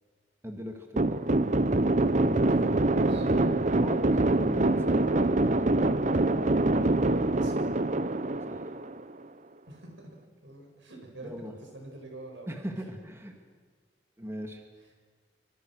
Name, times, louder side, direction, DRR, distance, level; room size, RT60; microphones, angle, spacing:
voice 1, 0.4-1.2 3.6-4.0 4.3-5.8 8.5-8.7 11.2-11.5 12.5-13.4 14.2-14.6, equal, 15° right, 3 dB, 2.2 m, -39 dB
sound 1, 1.0-9.2, right 2 dB, 40° right, 0.8 m, -25 dB
voice 2, 2.2-3.3 7.2-7.5 9.7-10.1 10.4-11.3 11.6-12.5, right 2 dB, 90° right, 2 dB, 7.1 m, -46 dB
25.5 x 25.5 x 6.5 m, 1.5 s
head